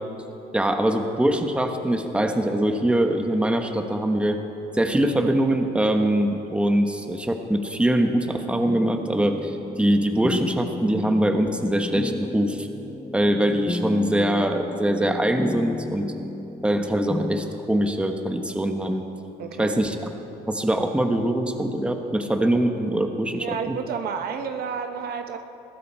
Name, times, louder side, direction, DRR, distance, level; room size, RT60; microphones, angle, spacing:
voice 1, 0.5-4.4 4.7-12.7 13.1-16.1 16.6-19.0 19.6-20.0 20.5-23.8, right 1 dB, 5° right, 5 dB, 1.1 m, -23 dB
sound 1, 8.7-17.6, left 2 dB, 10° left, 0.4 m, -32 dB
voice 2, 19.4-19.8 23.4-25.4, right 6 dB, 65° right, 6 dB, 1.2 m, -30 dB
21.0 x 14.5 x 4.4 m, 3.0 s
cardioid pair, 110°, 17 cm